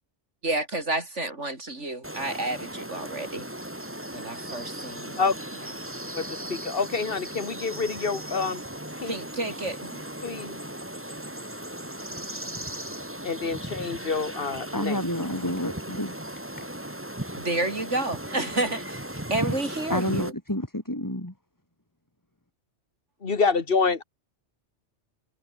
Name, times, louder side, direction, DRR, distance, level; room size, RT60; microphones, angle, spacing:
voice 1, 0.4-3.4 4.1-5.2 9.1-10.0 17.3-20.3, right 2 dB, 85° right, 5.6 m, -30 dB
sound 1, 2.0-20.3, right 1 dB, 10° right, 2.4 m, -37 dB
voice 2, 6.1-8.6 9.0-9.1 10.2-10.6 13.2-15.2 23.2-24.0, left 4 dB, 50° left, 1.9 m, -27 dB
voice 3, 14.7-16.2 16.6-16.7 19.9-21.3, left 1 dB, 15° left, 3.6 m, -29 dB
omnidirectional pair, 1.2 m